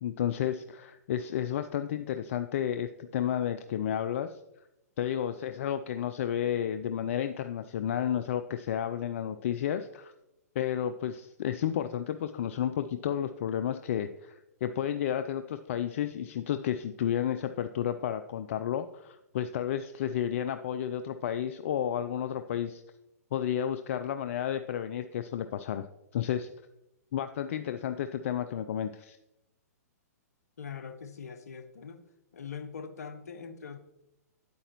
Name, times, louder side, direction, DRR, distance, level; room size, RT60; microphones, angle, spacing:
voice 1, 0.0-4.4 5.0-10.1 10.6-22.8 23.3-25.9 26.1-26.5 27.1-29.2, left 9 dB, 55° left, 9 dB, 0.4 m, -32 dB
voice 2, 30.6-32.0 32.3-33.8, left 6 dB, 70° left, 9 dB, 0.9 m, -42 dB
8.8 x 8.4 x 2.9 m, 0.89 s
hypercardioid pair, 120°, 9 cm